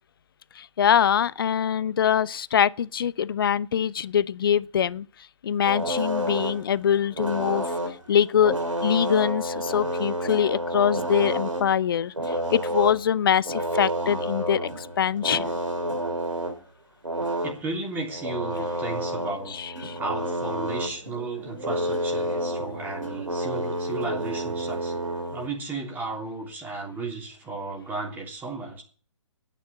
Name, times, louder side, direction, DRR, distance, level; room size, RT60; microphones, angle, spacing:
voice 1, 0.6-5.1 5.4-7.6 8.1-8.5 8.8-15.5 19.5-20.0, left 8 dB, 45° left, 0.6 m, -23 dB
sound 1, 5.6-6.7 7.0-11.7 12.0-13.0 13.3-16.6 17.0-17.6 18.1-25.5, equal, 85° right, 2.8 m, -30 dB
voice 2, 17.4-19.5 20.0-28.8, right 3 dB, 10° right, 3.3 m, -34 dB
11.0 x 9.2 x 8.6 m
figure-of-eight pair, 135°, 16 cm